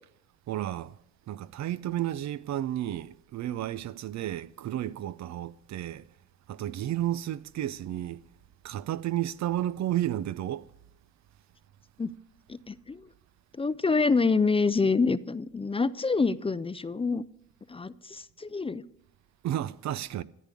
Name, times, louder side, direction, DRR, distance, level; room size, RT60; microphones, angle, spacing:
voice 1, 0.5-1.0 1.3-6.1 6.5-8.2 8.6-10.7 19.4-20.2, right 12 dB, 65° right, 0.6 m, -32 dB
voice 2, 12.5-13.1 13.6-17.2 17.7-18.8, left 4 dB, 20° left, 0.5 m, -26 dB
14.0 x 8.4 x 8.4 m
cardioid pair, 90°, 30 cm